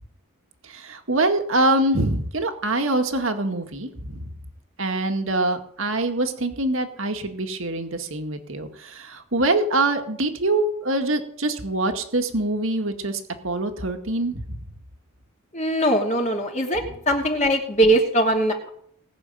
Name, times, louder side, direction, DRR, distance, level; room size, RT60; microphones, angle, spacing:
voice 1, 0.6-4.3 4.8-14.6, right 2 dB, 65° right, 5 dB, 2.0 m, -24 dB
voice 2, 15.5-18.7, right 1 dB, 30° left, 1 dB, 2.7 m, -21 dB
19.5 x 7.0 x 9.1 m, 0.65 s
head